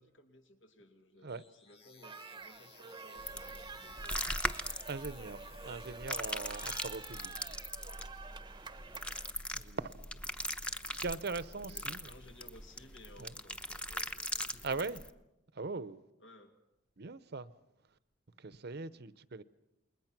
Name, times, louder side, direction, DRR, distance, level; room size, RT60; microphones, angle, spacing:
voice 1, 0.0-4.4 8.8-9.3 11.4-14.9 16.2-16.6 18.9-19.0, left 1 dB, 75° left, 2.6 m, -59 dB
sound 1, 1.3-7.3, left 5 dB, 30° left, 1.7 m, -59 dB
sound 2, 2.0-9.3, right 4 dB, 25° right, 0.9 m, -49 dB
sound 3, 3.2-15.1, left 1 dB, 5° left, 0.9 m, -40 dB
voice 2, 4.9-7.5 9.5-10.2 10.9-12.0 13.2-13.3 14.6-15.0 15.5-16.0 17.0-17.5 18.4-19.4, right 4 dB, 60° right, 0.8 m, -40 dB
29.0 x 21.0 x 6.1 m
head